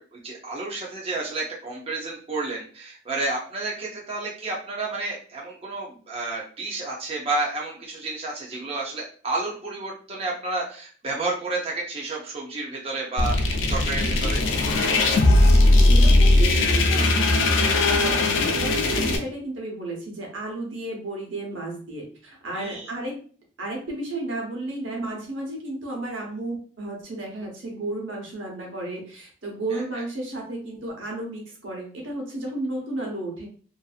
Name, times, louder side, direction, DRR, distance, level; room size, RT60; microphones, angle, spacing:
voice 1, 0.0-14.4 22.5-22.9 29.7-30.0, right 2 dB, 30° right, -3 dB, 0.6 m, -31 dB
sound 1, 13.2-19.2, left 2 dB, 80° left, 0.5 m, -19 dB
voice 2, 15.9-23.2 23.6-33.5, right 2 dB, 80° right, 0 dB, 1.0 m, -33 dB
2.6 x 2.5 x 2.4 m, 0.43 s
head